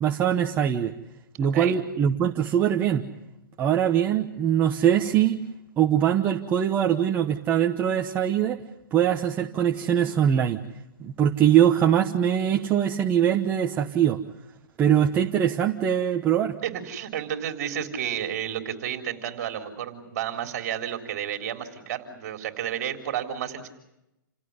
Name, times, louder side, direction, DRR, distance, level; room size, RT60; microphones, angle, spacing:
voice 1, 0.0-0.9 1.4-3.0 3.6-5.4 5.8-8.6 8.9-10.6 11.0-14.2 14.8-16.6, right 9 dB, 15° right, 3 dB, 1.1 m, -22 dB
voice 2, 16.6-23.7, right 10 dB, 45° right, 6 dB, 3.9 m, -31 dB
29.0 x 17.5 x 9.7 m, 0.89 s
hypercardioid pair, 155°, 11 cm